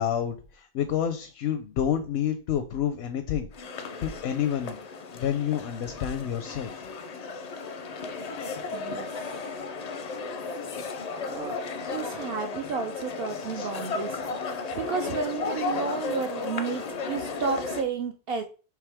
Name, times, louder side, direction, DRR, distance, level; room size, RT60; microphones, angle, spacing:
voice 1, 0.0-3.5 4.0-4.8 5.1-6.7 13.5-13.7, left 9 dB, 80° left, 7 dB, 0.8 m, -28 dB
sound 1, 3.5-17.8, left 4 dB, 50° left, 0.5 m, -34 dB
voice 2, 8.7-9.2 11.3-14.2 14.7-18.4, right 5 dB, 70° right, 5 dB, 0.8 m, -32 dB
4.8 x 3.1 x 3.4 m, 0.35 s
omnidirectional pair, 1.1 m